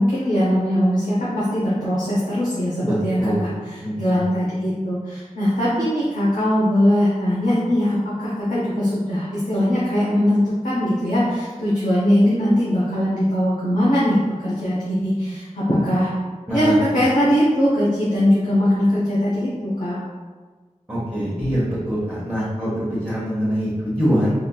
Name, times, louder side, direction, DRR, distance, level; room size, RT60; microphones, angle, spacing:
voice 1, 0.0-3.3 3.7-16.1 16.5-20.0, equal, 80° left, -9 dB, 0.7 m, -20 dB
voice 2, 2.8-3.5 3.8-4.3 16.5-17.1 20.9-24.3, equal, 10° right, -10 dB, 0.8 m, -24 dB
3.7 x 2.5 x 2.3 m, 1.4 s
wide cardioid pair, 50°, 13 cm